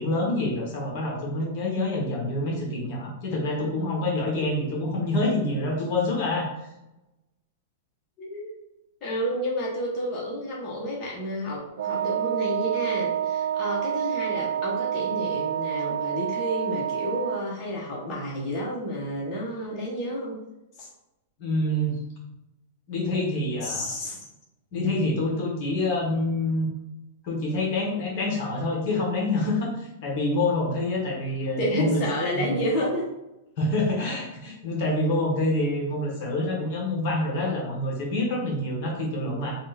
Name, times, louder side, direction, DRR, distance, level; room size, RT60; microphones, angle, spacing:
voice 1, 0.0-6.5 21.4-22.0 22.9-23.9 24.7-26.7 27.2-32.0 32.3-32.6 33.6-39.6, left 1 dB, 50° left, -2 dB, 1.2 m, -27 dB
voice 2, 8.2-8.5 9.0-20.3 20.8-20.9 23.6-24.2 31.6-33.1, equal, 30° left, -5 dB, 1.2 m, -30 dB
Wind instrument woodwind instrument, 11.8-17.5, right 10 dB, 75° right, 0.3 m, -28 dB
3.6 x 2.5 x 4.0 m, 0.92 s
supercardioid pair, 150°, 0 cm